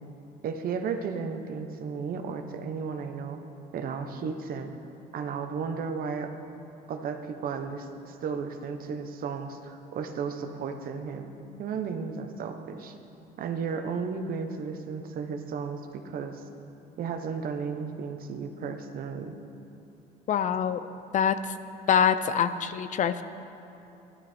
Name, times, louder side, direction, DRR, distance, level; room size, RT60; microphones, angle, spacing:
voice 1, 0.4-3.4 3.7-4.7 5.1-6.3 6.9-11.3 11.6-12.9 13.4-16.5 17.0-19.3, right 5 dB, 60° right, 6 dB, 1.1 m, -34 dB
voice 2, 20.3-20.8 21.1-21.4 21.9-23.2, left 8 dB, 50° left, 12 dB, 0.6 m, -24 dB
15.5 x 11.5 x 4.5 m, 2.9 s
cardioid pair, 110°, 17 cm